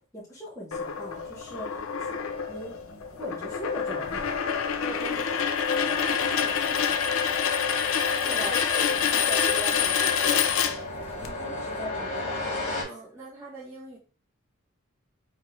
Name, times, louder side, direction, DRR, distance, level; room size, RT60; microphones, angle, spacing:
voice 1, 0.1-2.2 2.5-2.8 3.1-4.2 8.2-8.5 11.2-12.4, left 1 dB, 15° left, -7 dB, 1.1 m, -40 dB
sound 1, 0.7-11.3, left 7 dB, 75° left, 0.5 m, -27 dB
sound 2, 1.1-12.8, left 2 dB, 30° left, 1.5 m, -39 dB
voice 2, 4.8-5.3 5.8-7.2 8.0-10.6 12.8-14.0, right 3 dB, 15° right, -9 dB, 1.1 m, -41 dB
4.4 x 3.1 x 3.2 m, 0.38 s
head